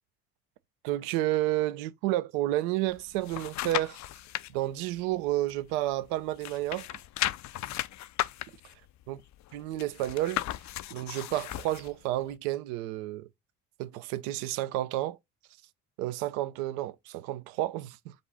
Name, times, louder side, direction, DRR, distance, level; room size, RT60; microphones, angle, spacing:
voice 1, 0.8-4.0 4.5-7.0 9.1-9.2 9.5-10.4 10.9-13.3 13.8-15.2 16.0-18.1, right 15 dB, 75° right, 0.6 m, -31 dB
sound 1, 2.9-4.5 5.0-6.1 6.3-11.9 12.4-12.5, left 14 dB, 45° left, 0.4 m, -35 dB
5.2 x 2.5 x 3.9 m
hypercardioid pair, 60°, 41 cm